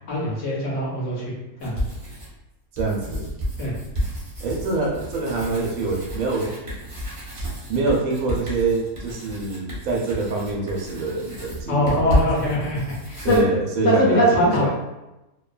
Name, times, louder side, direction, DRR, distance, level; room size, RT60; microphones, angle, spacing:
voice 1, 0.1-1.3 1.6-1.7 3.6-3.7 11.7-13.4 13.8-14.7, equal, 65° left, -4 dB, 1.0 m, -21 dB
sound 1, 1.6-2.4 2.8-13.4, equal, 40° right, 0.4 m, -31 dB
voice 2, 2.8-3.3 4.4-6.5 7.7-12.2 13.2-14.7, right 3 dB, 80° right, -1 dB, 1.0 m, -25 dB
2.6 x 2.2 x 2.3 m, 0.98 s
omnidirectional pair, 1.5 m